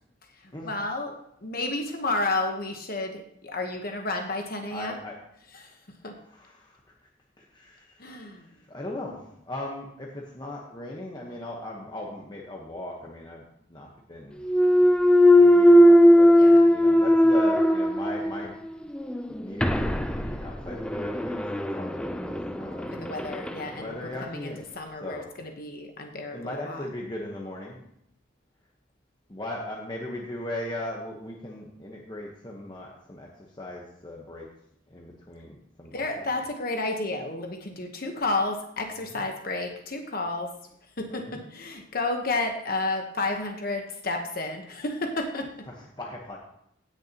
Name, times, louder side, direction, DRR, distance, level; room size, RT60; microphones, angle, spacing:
voice 1, 0.3-1.1 1.4-5.0 5.5-5.8 6.0-6.1 8.0-8.5 16.3-16.7 22.8-26.9 35.9-40.5 41.0-45.6, left 2 dB, 45° left, 3 dB, 1.1 m, -31 dB
voice 2, 4.7-5.2 5.5-5.7 6.3-6.8 7.4-8.1 8.5-14.4 15.4-16.3 16.7-18.6 19.4-23.0 23.8-24.6 25.0-25.2 26.3-27.8 29.3-34.5 34.9-36.3 39.1-39.2 41.1-41.5 45.7-46.4, left 1 dB, 20° left, -2 dB, 1.1 m, -38 dB
Thump thud, 14.4-18.5 18.9-23.6, equal, 5° left, 0.4 m, -19 dB
16.5 x 6.7 x 2.9 m, 0.74 s
head